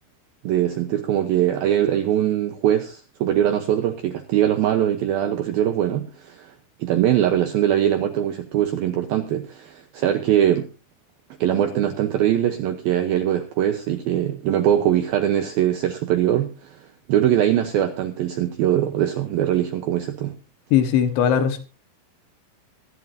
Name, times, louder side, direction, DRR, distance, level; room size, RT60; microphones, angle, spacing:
voice 1, 0.4-6.5 6.8-10.7 11.4-16.8 17.1-20.4, right 11 dB, 80° right, 2.2 m, -22 dB
voice 2, 20.7-21.6, left 9 dB, 75° left, 3.6 m, -19 dB
23.5 x 11.0 x 2.7 m
omnidirectional pair, 5.5 m